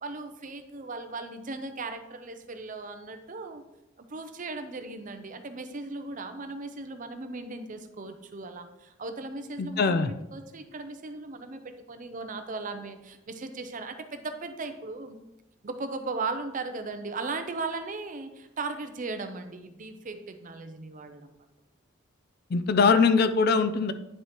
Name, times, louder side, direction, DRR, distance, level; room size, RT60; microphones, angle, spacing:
voice 1, 0.0-3.6 4.1-15.2 15.6-21.3, right 3 dB, 40° right, 8 dB, 0.6 m, -37 dB
voice 2, 9.6-10.1 22.5-23.9, left 5 dB, 50° left, 12 dB, 0.4 m, -22 dB
9.6 x 5.4 x 3.0 m, 0.94 s
head